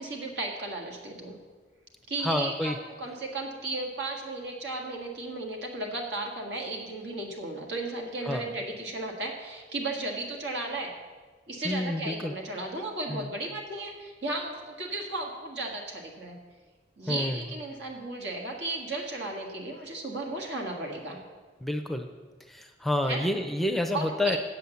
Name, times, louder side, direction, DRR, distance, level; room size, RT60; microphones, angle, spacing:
voice 1, 0.0-1.3 2.1-2.7 3.0-10.9 11.5-16.4 17.0-21.2 23.1-23.3 23.9-24.4, right 2 dB, 80° right, 1 dB, 1.8 m, -35 dB
voice 2, 2.2-2.8 8.2-8.5 11.6-12.4 13.1-13.3 17.1-17.5 21.6-22.1 22.5-24.4, left 1 dB, ahead, 6 dB, 0.5 m, -29 dB
7.8 x 7.6 x 7.0 m, 1.4 s
head